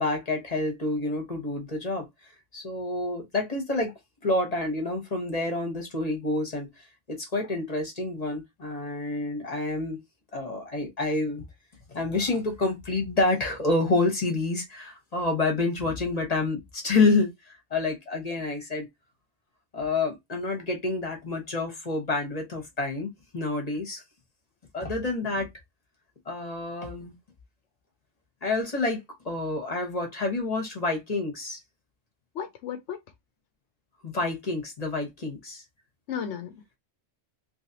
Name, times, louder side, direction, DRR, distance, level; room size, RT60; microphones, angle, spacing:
voice 1, 0.0-2.1 2.5-3.9 4.2-6.7 7.1-10.0 10.3-11.4 11.9-18.9 19.7-24.0 24.7-25.5 26.3-27.1 28.4-31.6 34.0-35.6, left 3 dB, 35° left, 1.3 m, -28 dB
voice 2, 32.3-33.0 36.1-36.8, left 8 dB, 75° left, 1.0 m, -34 dB
3.2 x 3.2 x 2.8 m
omnidirectional pair, 1.2 m